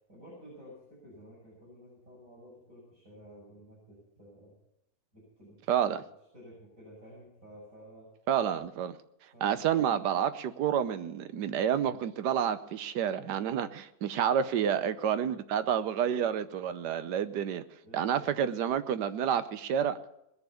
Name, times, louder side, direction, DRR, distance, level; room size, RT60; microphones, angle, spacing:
voice 1, 0.1-4.6 5.1-8.1 9.3-9.6 14.4-14.8 17.8-18.2, equal, 50° right, -7 dB, 6.6 m, -52 dB
voice 2, 5.7-6.0 8.3-9.0 9.4-17.6 17.9-20.0, right 9 dB, 80° right, 12 dB, 1.4 m, -29 dB
20.0 x 7.0 x 6.9 m, 0.86 s
omnidirectional pair, 1.8 m